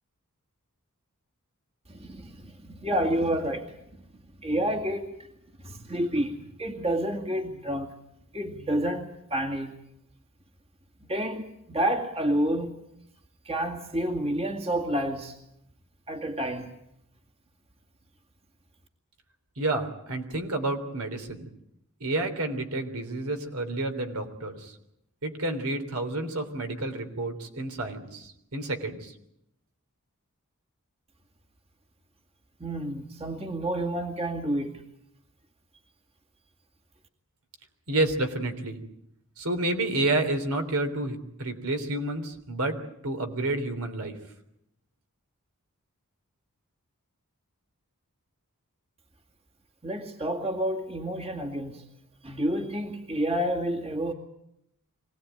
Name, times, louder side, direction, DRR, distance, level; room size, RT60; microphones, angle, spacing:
voice 1, 1.9-3.8 4.4-5.2 5.6-7.9 8.3-9.7 11.0-12.7 13.4-15.4 16.1-16.7 32.6-34.8 49.8-51.9 52.2-54.1, right 1 dB, 30° right, 2.3 m, -29 dB
voice 2, 19.6-21.5 22.0-24.7 25.2-29.1 37.9-38.8 39.4-42.8 43.0-44.2, right 2 dB, 70° right, 3.4 m, -30 dB
25.0 x 18.5 x 9.2 m
head